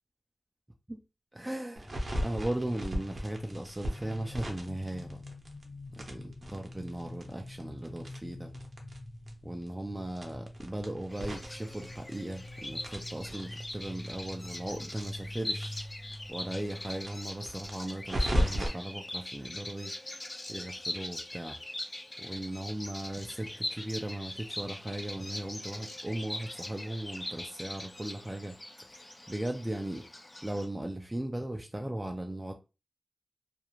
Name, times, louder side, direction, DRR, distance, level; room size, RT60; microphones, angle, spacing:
voice 1, 1.3-1.9 2.2-5.2 6.0-8.5 9.4-15.8 16.3-19.9 20.5-21.6 22.2-28.6 28.9-30.1 30.4-32.5, right 1 dB, 20° right, 0.4 m, -37 dB
sound 1, 1.8-17.8, left 1 dB, 80° left, 1.0 m, -46 dB
sound 2, 1.8-5.6 5.9-9.0 9.3-9.4 9.6-9.7 10.1-12.5 12.8-15.8 16.1-16.2 16.5-16.6 17.0-18.7, equal, 55° right, 0.7 m, -35 dB
Bird vocalization bird call bird song, 11.1-30.7, left 1 dB, 40° left, 0.5 m, -42 dB
2.4 x 2.1 x 2.9 m
wide cardioid pair, 65°, 0 cm